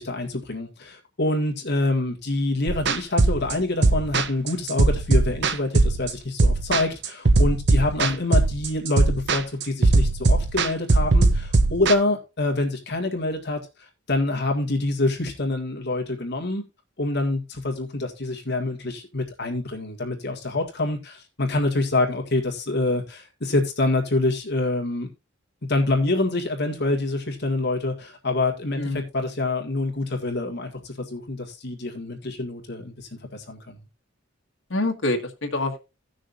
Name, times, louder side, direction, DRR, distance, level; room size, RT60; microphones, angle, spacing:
voice 1, 0.0-13.6 14.1-16.7 17.0-25.1 25.7-33.9, left 2 dB, 55° left, 2 dB, 2.0 m, -26 dB
sound 1, 2.7-11.9, right 3 dB, 60° right, 0.8 m, -20 dB
voice 2, 34.7-35.8, left 2 dB, 75° left, 2 dB, 1.8 m, -26 dB
17.0 x 6.3 x 2.6 m, 0.27 s
head